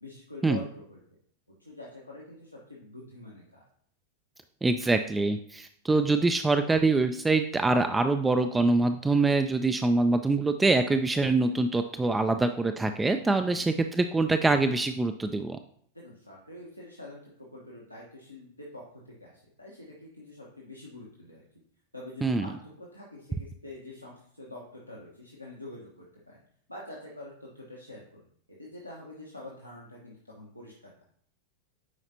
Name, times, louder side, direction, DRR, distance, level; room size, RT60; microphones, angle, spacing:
voice 1, 0.0-1.0 1.6-3.7 13.4-13.7 15.9-18.8 19.2-21.4 21.9-26.4 26.7-30.9, left 2 dB, 85° left, -4 dB, 1.2 m, -46 dB
voice 2, 4.6-15.6 22.2-22.5, right 3 dB, 10° right, 8 dB, 0.3 m, -24 dB
9.4 x 4.9 x 2.8 m, 0.63 s
figure-of-eight pair, 90°, 0 cm